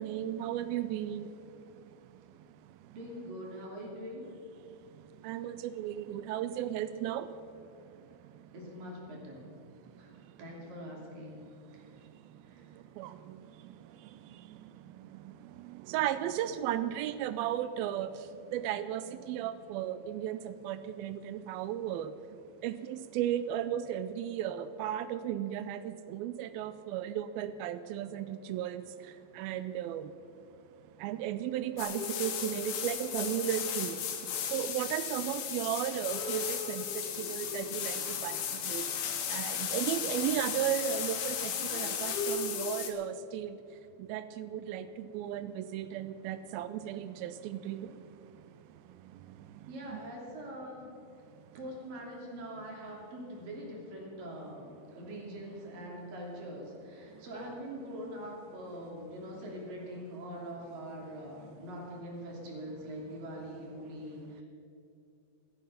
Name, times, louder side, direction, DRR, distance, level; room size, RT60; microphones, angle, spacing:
voice 1, 0.0-3.0 4.6-8.5 9.7-10.4 11.1-30.2 30.6-50.0 51.3-51.6 57.0-57.3 63.1-63.2, right 11 dB, 85° right, 13 dB, 2.2 m, -36 dB
voice 2, 2.9-4.3 8.5-9.5 10.0-10.1 10.4-11.4 11.7-12.0 12.4-12.6 49.7-50.9 51.5-64.4, equal, 60° right, -2 dB, 4.4 m, -43 dB
sound 1, 31.8-42.9, left 7 dB, 75° left, 3.0 m, -35 dB
16.5 x 13.5 x 5.7 m, 2.7 s
omnidirectional pair, 4.7 m